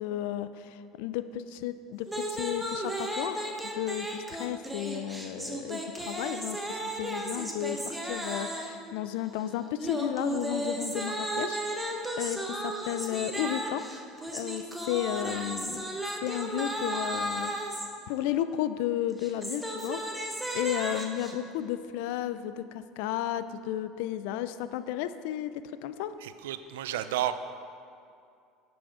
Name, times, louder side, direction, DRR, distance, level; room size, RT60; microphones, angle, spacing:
voice 1, 0.0-13.8 14.3-15.8 16.2-17.8 18.1-20.0 20.5-26.2, left 11 dB, 75° left, 13 dB, 0.4 m, -33 dB
sound 1, 2.1-8.8 9.8-17.9 19.1-21.3, right 1 dB, 5° right, 1.2 m, -34 dB
voice 2, 26.2-27.3, right 12 dB, 85° right, 12 dB, 0.4 m, -31 dB
9.1 x 6.2 x 4.9 m, 2.4 s
hypercardioid pair, 85°, 0 cm